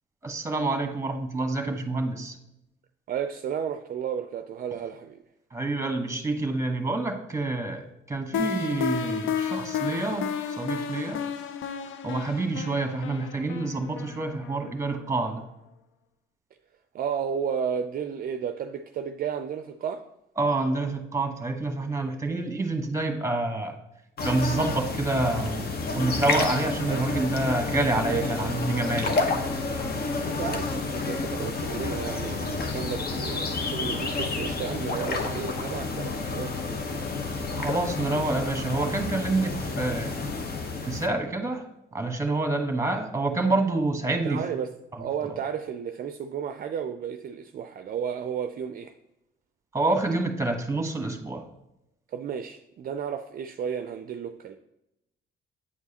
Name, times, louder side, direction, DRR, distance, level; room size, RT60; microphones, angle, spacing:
voice 1, 0.2-2.4 5.5-10.3 10.6-11.2 12.0-15.4 20.4-23.7 24.2-29.4 37.5-40.1 40.8-41.6 41.9-44.4 44.9-45.0 45.3-45.4 49.7-51.4, right 2 dB, 15° right, 4 dB, 1.2 m, -27 dB
voice 2, 3.1-5.2 16.9-20.0 26.9-27.4 28.1-28.3 30.2-36.9 44.2-48.9 52.1-54.6, right 7 dB, 50° right, 8 dB, 0.4 m, -33 dB
sound 1, 8.3-15.1, left 7 dB, 85° left, 0.5 m, -32 dB
sound 2, 24.2-41.1, left 3 dB, 50° left, 0.9 m, -30 dB
8.4 x 4.7 x 2.8 m, 0.88 s
cardioid pair, 90°, 20 cm